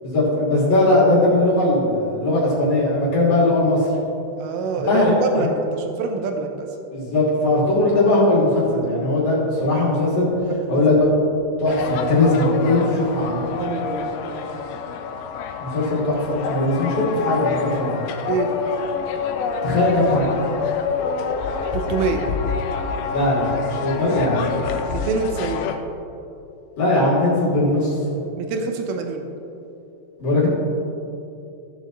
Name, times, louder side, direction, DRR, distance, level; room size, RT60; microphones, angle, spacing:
voice 1, 0.0-3.9 4.8-5.5 6.9-10.3 10.7-11.1 11.6-13.4 15.6-18.0 19.6-20.3 23.1-24.6 26.8-28.2 30.2-30.5, left 2 dB, 45° left, -7 dB, 3.4 m, -19 dB
voice 2, 4.4-6.7 10.6-11.0 13.6-14.6 18.3-18.5 21.7-22.3 24.9-25.7 28.4-29.3, right 4 dB, 85° right, 4 dB, 2.7 m, -26 dB
sound 1, 11.6-25.8, left 5 dB, 90° left, 2.5 m, -27 dB
16.5 x 6.8 x 3.1 m, 2.7 s
omnidirectional pair, 4.3 m